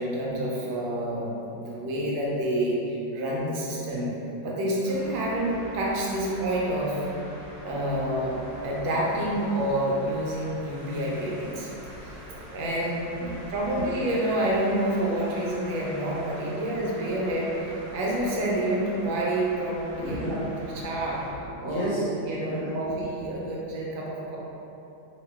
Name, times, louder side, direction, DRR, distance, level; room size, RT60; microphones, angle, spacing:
voice 1, 0.0-4.1 4.4-7.0 7.6-8.4 8.6-11.7 12.0-12.1 12.5-13.2 13.5-20.4 20.8-21.2 21.6-21.9 22.2-24.4, right 1 dB, 90° right, -4 dB, 1.4 m, -28 dB
sound 1, 4.8-21.3, right 1 dB, 30° right, 0.8 m, -44 dB
voice 2, 11.9-12.6 13.2-13.4 13.8-13.9 19.9-22.1 22.5-23.3, equal, 65° left, -8 dB, 0.9 m, -35 dB
3.0 x 2.7 x 3.3 m, 3.0 s
omnidirectional pair, 2.0 m